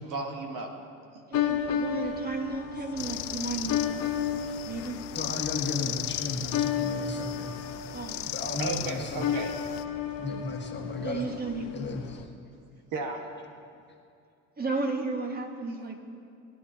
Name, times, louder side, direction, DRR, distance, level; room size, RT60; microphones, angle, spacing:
voice 1, 0.0-0.8 1.1-1.2 4.4-4.6 8.6-9.5 12.5-12.6 12.9-13.2 15.8-15.9, right 3 dB, 65° right, 3 dB, 1.7 m, -35 dB
sound 1, 1.3-12.2, left 8 dB, 70° left, 1.0 m, -33 dB
voice 2, 1.3-3.8 4.7-5.0 7.9-8.3 11.0-11.7 14.6-16.0, right 3 dB, 25° right, 2 dB, 1.8 m, -33 dB
sound 2, 3.0-9.8, left 15 dB, 85° left, 0.6 m, -37 dB
voice 3, 5.1-7.5 8.2-9.3 10.2-11.3 11.7-12.2, left 3 dB, 30° left, 1 dB, 1.7 m, -34 dB
20.5 x 10.0 x 2.9 m, 2.5 s
supercardioid pair, 70°, 35 cm